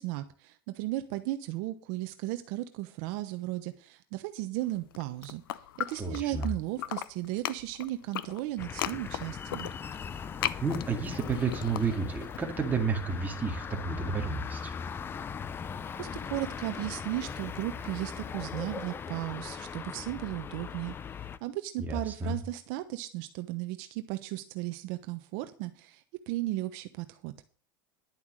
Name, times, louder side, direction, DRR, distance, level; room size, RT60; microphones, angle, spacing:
voice 1, 0.0-5.4 5.8-9.7 16.0-21.0 21.4-27.3, right 16 dB, 60° right, 9 dB, 1.0 m, -35 dB
sound 1, 4.8-6.5 6.8-12.4, left 13 dB, 85° left, 0.8 m, -37 dB
voice 2, 6.0-6.5 10.6-14.7 21.9-22.4, right 4 dB, 15° right, 3 dB, 2.1 m, -31 dB
sound 2, 8.6-21.4, left 6 dB, 20° left, 0.5 m, -39 dB
11.0 x 7.2 x 6.4 m, 0.38 s
supercardioid pair, 135°, 12 cm